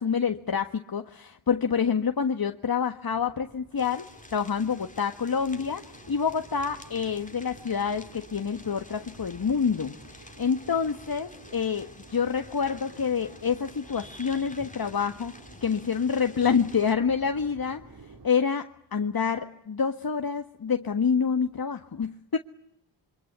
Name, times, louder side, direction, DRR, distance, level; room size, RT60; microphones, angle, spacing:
voice 1, 0.0-4.0 4.3-15.3 15.6-17.8 18.2-22.4, left 6 dB, 45° left, 7 dB, 1.6 m, -27 dB
Crowd, 3.1-18.3, right 3 dB, 45° right, 4.1 m, -51 dB
sound 1, 3.8-17.0, left 2 dB, 15° left, 2.7 m, -50 dB
27.0 x 24.5 x 8.1 m, 0.76 s
cardioid pair, 45°, 47 cm